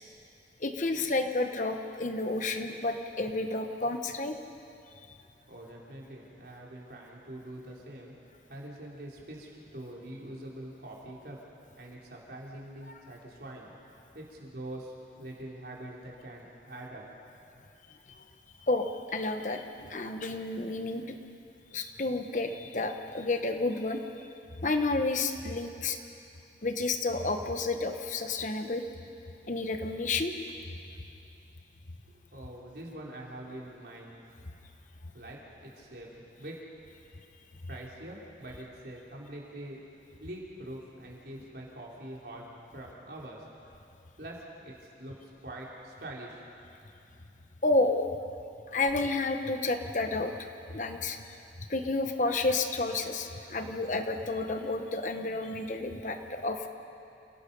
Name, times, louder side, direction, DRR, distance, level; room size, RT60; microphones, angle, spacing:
voice 1, 0.6-4.3 18.7-21.2 21.7-24.0 24.6-26.0 26.6-28.8 29.5-30.4 47.6-48.2 48.7-51.2 51.7-56.7, left 2 dB, 45° left, 6 dB, 1.1 m, -30 dB
voice 2, 5.5-8.1 8.5-11.4 11.8-13.7 14.1-17.0 32.1-34.2 35.1-36.6 37.7-39.8 40.2-42.4 42.7-43.4 44.2-44.4 44.6-45.1 45.4-46.4, right 1 dB, 65° right, -3 dB, 3.7 m, -44 dB
28.5 x 17.5 x 5.5 m, 2.7 s
head